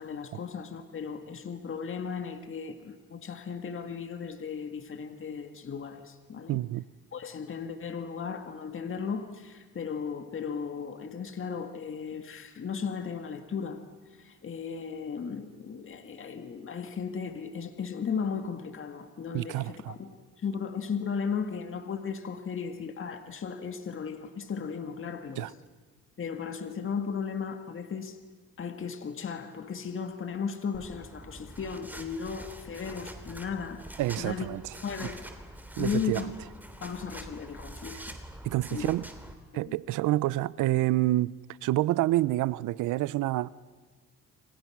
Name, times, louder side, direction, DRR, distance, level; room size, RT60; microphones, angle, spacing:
voice 1, 0.0-6.6 7.1-20.1 20.4-25.5 26.2-28.2 28.6-33.8 34.2-34.5 34.8-35.2 35.8-36.3 36.8-38.2 38.7-38.9 39.5-39.8, left 6 dB, 45° left, 1.9 m, -36 dB
voice 2, 6.5-6.8 19.3-19.9 25.4-25.5 34.0-34.6 35.8-36.2 37.9-38.0 38.4-39.1 39.5-43.5, right 16 dB, 85° right, 0.7 m, -28 dB
sound 1, 30.7-39.3, right 1 dB, 5° right, 3.2 m, -45 dB
29.0 x 26.5 x 6.0 m
cardioid pair, 90°, 30 cm